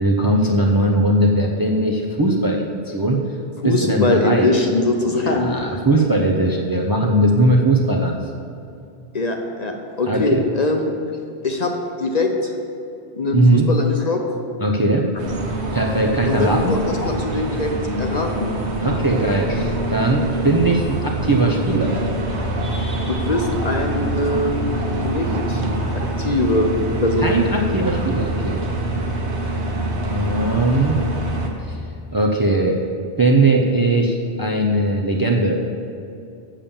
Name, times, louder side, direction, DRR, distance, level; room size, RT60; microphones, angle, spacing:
voice 1, 0.0-3.2 3.6-4.5 5.0-8.2 10.1-10.4 13.3-13.7 14.6-15.1 15.7-16.8 18.8-21.9 27.2-28.6 30.0-31.0 31.7-31.8 32.1-32.8 33.2-35.6, right 1 dB, 25° right, 0 dB, 0.6 m, -19 dB
voice 2, 3.6-5.5 9.1-10.9 11.4-11.7 12.0-12.5 13.1-14.2 16.3-17.7 18.0-18.6 23.1-24.6 25.0-25.6 26.2-26.7 27.0-27.4, left 2 dB, 45° left, 3 dB, 0.8 m, -22 dB
sound 1, 15.2-31.5, right 1 dB, 80° right, 1.4 m, -25 dB
7.4 x 6.9 x 7.1 m, 2.6 s
omnidirectional pair, 1.1 m